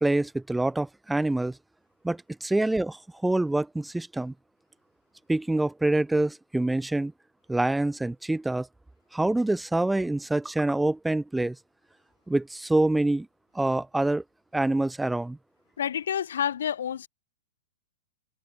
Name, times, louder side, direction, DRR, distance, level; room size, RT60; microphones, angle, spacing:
voice 1, 0.0-1.6 2.0-4.3 5.3-7.1 7.5-8.7 9.1-11.6 12.3-13.3 13.5-14.2 14.5-15.4, right 2 dB, 5° right, 2.7 m, -26 dB
voice 2, 15.8-17.1, left 9 dB, 75° left, 3.4 m, -29 dB
hypercardioid pair, 115°, 0 cm